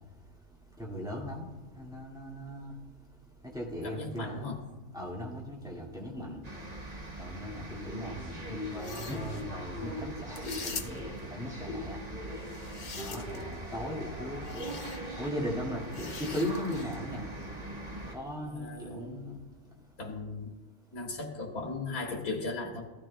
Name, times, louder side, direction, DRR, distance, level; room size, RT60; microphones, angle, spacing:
voice 1, 0.0-4.5 4.9-20.0, left 1 dB, 5° right, -4 dB, 2.0 m, -39 dB
voice 2, 3.8-4.6 6.2-6.4 18.4-19.2 20.0-20.5 20.9-22.8, left 3 dB, 85° left, -1 dB, 1.8 m, -37 dB
sound 1, 6.4-18.2, right 1 dB, 30° right, 1.3 m, -41 dB
sound 2, 8.7-9.4 10.3-11.2 12.4-13.5 14.4-15.0 15.9-17.0, left 5 dB, 40° left, 0.7 m, -43 dB
16.0 x 10.5 x 2.2 m, 1.3 s
omnidirectional pair, 1.5 m